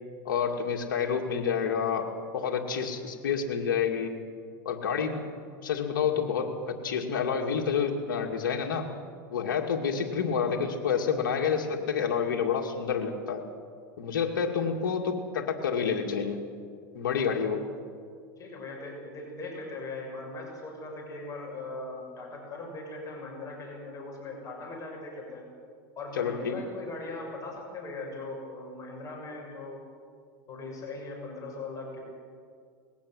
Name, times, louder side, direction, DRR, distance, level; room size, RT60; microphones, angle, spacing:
voice 1, 0.2-4.1 4.6-5.2 5.6-8.9 9.3-13.4 14.0-16.4 16.9-17.6 26.1-26.6, left 6 dB, 80° left, 1 dB, 2.3 m, -29 dB
voice 2, 18.4-25.5 25.9-29.8 30.5-32.0, left 2 dB, 30° left, 0 dB, 6.6 m, -40 dB
20.5 x 17.5 x 7.9 m, 2.1 s
hypercardioid pair, 110°, 11 cm